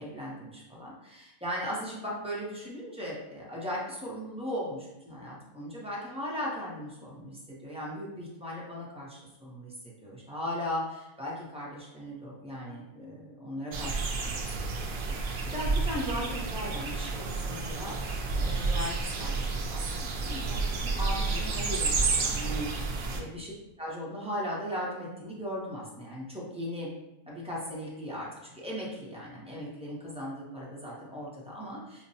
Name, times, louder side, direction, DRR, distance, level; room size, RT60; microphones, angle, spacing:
voice 1, 0.0-23.5 23.8-26.9 27.3-32.1, equal, 5° right, -6 dB, 0.5 m, -38 dB
sound 1, 13.7-23.2, right 3 dB, 75° right, 0.4 m, -30 dB
5.0 x 2.0 x 2.7 m, 0.95 s
omnidirectional pair, 1.4 m